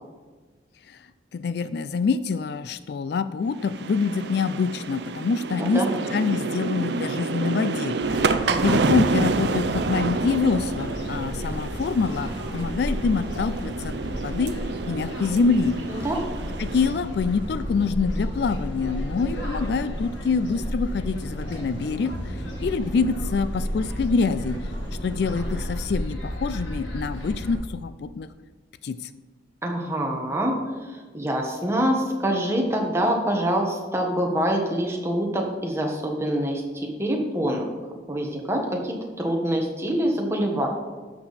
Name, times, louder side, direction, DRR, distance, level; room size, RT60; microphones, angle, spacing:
voice 1, 0.9-5.8 6.1-8.3 8.6-14.6 14.9-15.8 16.6-24.7 25.0-28.3 28.8-29.1, left 4 dB, 55° left, 13 dB, 0.3 m, -26 dB
sound 1, 3.6-17.1, right 3 dB, 60° right, 0.5 m, -29 dB
voice 2, 5.5-5.9 8.5-8.9 15.9-16.2 29.6-30.5 30.8-37.6 38.1-40.7, right 1 dB, 15° right, 0 dB, 1.3 m, -25 dB
sound 2, 8.0-27.6, equal, 75° left, 1.8 m, -32 dB
11.5 x 6.8 x 4.1 m, 1.4 s
head